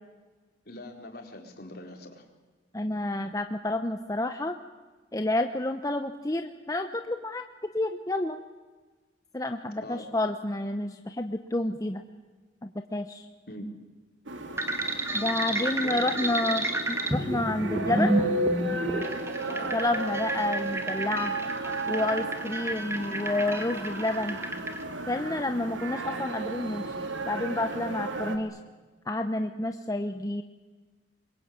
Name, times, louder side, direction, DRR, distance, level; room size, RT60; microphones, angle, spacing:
voice 1, 0.7-2.2 9.8-10.1 13.5-13.7 15.8-16.5 19.4-19.8, left 1 dB, 55° left, 3 dB, 4.2 m, -41 dB
voice 2, 2.7-4.6 5.1-7.4 7.7-8.4 9.3-12.0 12.6-13.3 15.1-18.1 19.7-21.3 21.9-24.4 25.1-28.6 29.1-30.4, left 2 dB, 20° left, 7 dB, 0.9 m, -29 dB
sound 1, 14.3-28.4, right 2 dB, 80° right, 2.7 m, -34 dB
sound 2, 14.6-24.8, right 1 dB, 15° right, 1.9 m, -31 dB
26.5 x 22.5 x 8.8 m, 1.3 s
head